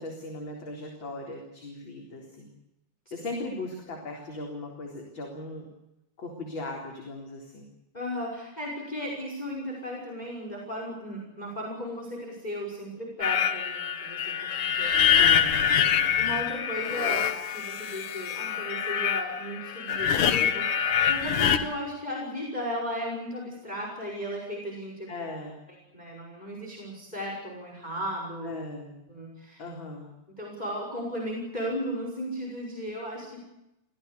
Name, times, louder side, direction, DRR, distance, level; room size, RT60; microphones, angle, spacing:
voice 1, 0.0-2.5 3.1-5.7 6.2-7.7 15.1-15.6 25.1-25.6 28.4-28.9 29.6-30.1, left 2 dB, 40° left, 0 dB, 4.5 m, -38 dB
voice 2, 7.9-15.2 15.8-25.1 25.9-28.5 29.1-29.6 30.4-33.4, equal, 10° left, 0 dB, 5.9 m, -35 dB
sound 1, 13.2-21.6, left 8 dB, 85° left, 3.0 m, -25 dB
26.0 x 17.0 x 8.3 m, 0.90 s
omnidirectional pair, 3.5 m